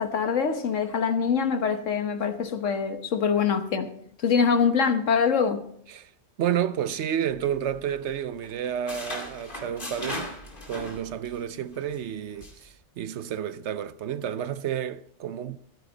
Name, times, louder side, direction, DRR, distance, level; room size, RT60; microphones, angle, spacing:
voice 1, 0.0-3.9 4.2-5.6, left 6 dB, 80° left, 1.5 m, -24 dB
voice 2, 6.4-10.3 10.7-15.6, right 9 dB, 70° right, 0.9 m, -30 dB
sound 1, 7.3-8.2 8.4-11.4 11.7-12.0 12.4-12.7, left 1 dB, 40° left, 2.6 m, -38 dB
14.0 x 14.0 x 4.0 m
omnidirectional pair, 1.3 m